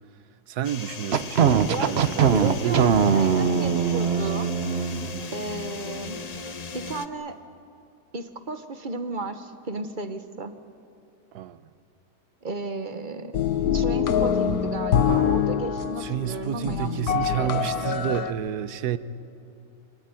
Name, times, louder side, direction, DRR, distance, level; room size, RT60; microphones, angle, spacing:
voice 1, 0.5-2.8 11.3-11.6 16.0-19.0, right 11 dB, 75° right, 1.3 m, -30 dB
sound 1, 0.6-7.1, left 4 dB, 40° left, 0.6 m, -37 dB
sound 2, 1.1-5.2, right 7 dB, 50° right, 0.9 m, -21 dB
voice 2, 2.3-4.5 5.3-6.2 6.7-7.4 8.1-10.5 12.4-13.3 13.7-16.9 17.2-17.9, right 3 dB, 30° right, 1.3 m, -33 dB
sound 3, 13.3-18.3, left 8 dB, 65° left, 1.4 m, -24 dB
26.5 x 18.5 x 9.1 m
omnidirectional pair, 1.7 m